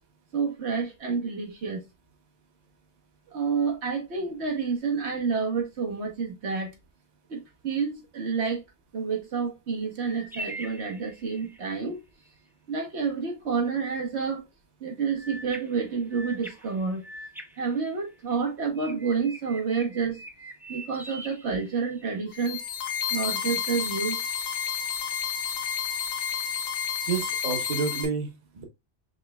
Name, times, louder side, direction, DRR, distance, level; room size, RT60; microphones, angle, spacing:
voice 1, 0.3-1.8 3.3-6.7 7.3-8.6 8.9-12.0 12.7-14.4 14.8-17.0 17.6-20.2 20.7-22.6 23.1-24.2, right 5 dB, 80° right, 1.3 m, -29 dB
sound 1, 10.0-11.7 15.2-18.4 18.8-22.2, right 1 dB, 5° right, 0.3 m, -43 dB
sound 2, 22.3-28.1, left 8 dB, 65° left, 1.0 m, -30 dB
voice 2, 27.1-28.6, right 5 dB, 45° right, 0.9 m, -30 dB
5.0 x 3.1 x 2.2 m
omnidirectional pair, 1.1 m